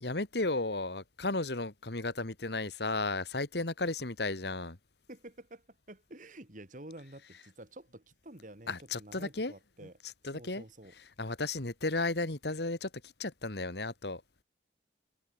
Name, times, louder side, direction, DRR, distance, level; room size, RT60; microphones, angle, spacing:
voice 1, 0.0-4.8 8.7-9.5 9.8-9.9 10.2-10.6 11.2-14.2, left 2 dB, 60° left, 1.9 m, -34 dB
voice 2, 5.1-9.9 10.3-10.9, right 1 dB, 45° right, 3.1 m, -50 dB
head